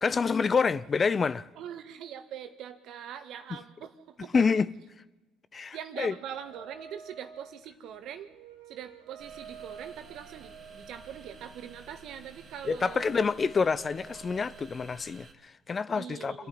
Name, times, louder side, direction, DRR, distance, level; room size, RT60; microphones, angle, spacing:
voice 1, 0.0-1.5 4.3-4.7 5.5-6.1 12.6-16.5, left 5 dB, 35° left, 0.7 m, -27 dB
voice 2, 1.6-4.6 5.7-8.3 8.7-13.0 15.9-16.5, right 9 dB, 60° right, 1.7 m, -42 dB
sound 1, 6.3-14.7, right 6 dB, 75° right, 1.4 m, -50 dB
sound 2, 9.2-15.3, right 5 dB, 45° right, 2.2 m, -53 dB
Male speech man speaking / Child speech kid speaking / Chatter, 9.5-15.2, left 4 dB, 70° left, 3.2 m, -60 dB
26.5 x 11.0 x 9.5 m
hypercardioid pair, 60°, 0 cm